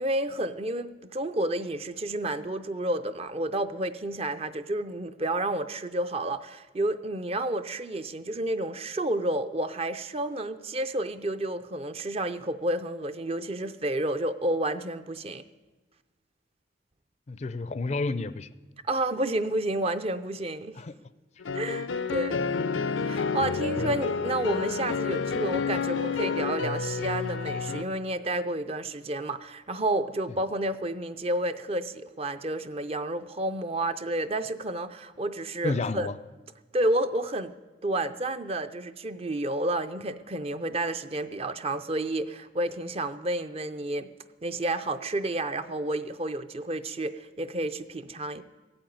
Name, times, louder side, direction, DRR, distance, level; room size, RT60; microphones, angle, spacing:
voice 1, 0.0-15.4 18.9-20.8 21.5-22.5 23.0-36.1 36.7-37.5 37.8-44.1 44.4-48.4, right 1 dB, 30° right, 10 dB, 0.5 m, -30 dB
voice 2, 17.3-18.5 20.8-20.9 23.8-24.0 35.6-36.1, left 3 dB, 35° left, 14 dB, 0.4 m, -30 dB
sound 1, 21.4-27.8, left 5 dB, 85° left, 0.6 m, -29 dB
15.0 x 8.8 x 9.3 m, 1.3 s
head